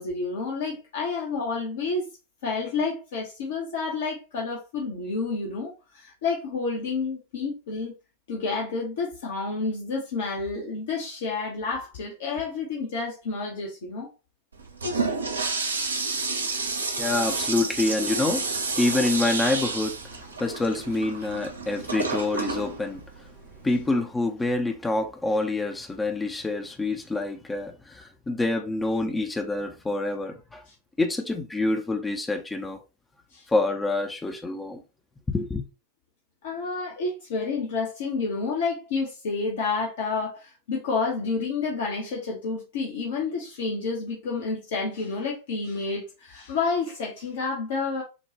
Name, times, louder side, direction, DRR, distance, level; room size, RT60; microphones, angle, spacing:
voice 1, 0.0-2.1 2.4-7.9 8.3-14.1 15.2-15.4 15.8-15.9 16.4-16.6 30.7-30.8 33.3-33.4 36.4-48.0, left 4 dB, 55° left, 1.0 m, -30 dB
Toilet flush, 14.5-23.9, right 3 dB, 75° right, 0.7 m, -30 dB
voice 2, 17.0-23.0 23.6-30.6 31.0-32.8 33.5-34.8 35.3-35.6, left 2 dB, 10° left, 0.6 m, -27 dB
6.5 x 2.3 x 3.0 m
figure-of-eight pair, 90°, 0 cm